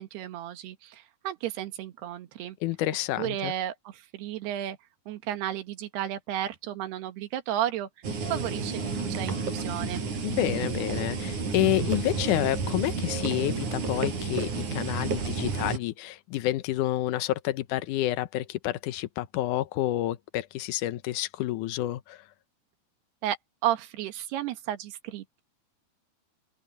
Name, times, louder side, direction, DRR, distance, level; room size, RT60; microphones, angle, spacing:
voice 1, 0.0-2.6 3.2-4.8 5.1-7.9 8.3-10.0 23.2-23.4 23.6-25.4, right 12 dB, 80° right, 3.6 m, -33 dB
voice 2, 2.6-3.5 10.2-22.2, left 15 dB, 70° left, 1.9 m, -29 dB
sound 1, 8.0-15.8, right 4 dB, 50° right, 6.4 m, -31 dB
open air
omnidirectional pair, 4.6 m